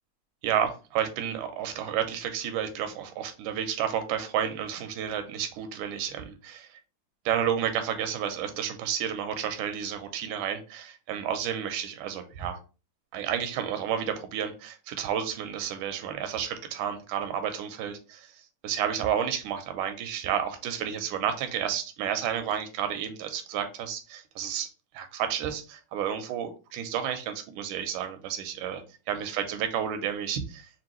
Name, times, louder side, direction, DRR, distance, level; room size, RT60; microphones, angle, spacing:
voice 1, 0.4-6.8 7.3-12.6 13.1-18.3 18.6-24.7 24.9-30.7, right 9 dB, 85° right, 8 dB, 2.1 m, -31 dB
6.0 x 2.5 x 3.0 m, 0.33 s
omnidirectional pair, 3.5 m